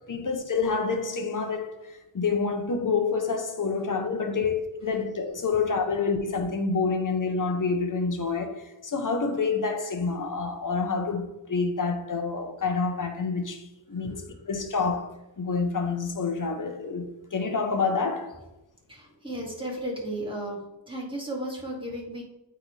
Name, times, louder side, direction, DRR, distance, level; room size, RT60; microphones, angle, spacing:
voice 1, 0.1-14.1 14.5-18.4, left 4 dB, 40° left, 1.1 m, -28 dB
voice 2, 18.9-20.6 20.9-22.2, right 1 dB, 10° right, 2.4 m, -34 dB
8.7 x 3.9 x 3.4 m
wide cardioid pair, 75°, 47 cm